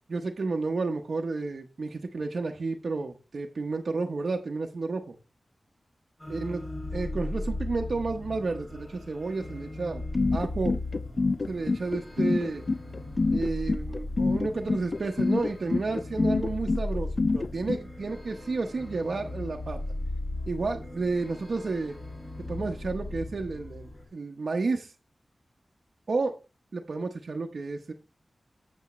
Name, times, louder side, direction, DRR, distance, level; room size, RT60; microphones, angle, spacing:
voice 1, 0.1-5.2 6.3-6.6 6.9-10.0 10.3-10.7 11.5-12.6 13.3-17.1 17.3-19.8 20.5-22.0 22.5-24.9 26.1-26.4 26.7-27.9, right 3 dB, 70° right, 2 dB, 0.9 m, -31 dB
sound 1, 6.2-24.0, left 2 dB, 30° left, 2.7 m, -37 dB
sound 2, 10.1-17.8, left 3 dB, 55° left, 0.3 m, -26 dB
8.3 x 8.2 x 3.1 m, 0.30 s
wide cardioid pair, 80°, 0 cm